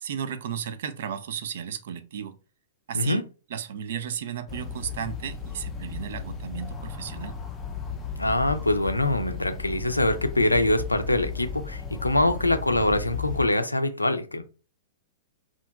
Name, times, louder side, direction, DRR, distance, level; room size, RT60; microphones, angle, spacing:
voice 1, 0.0-2.4 2.9-3.2 3.5-7.4, right 8 dB, 60° right, 0.4 m, -34 dB
sound 1, 4.5-13.5, left 5 dB, 15° left, 0.5 m, -35 dB
voice 2, 8.2-14.4, left 1 dB, 90° left, 0.4 m, -24 dB
2.7 x 2.4 x 2.3 m
figure-of-eight pair, 105°, 0 cm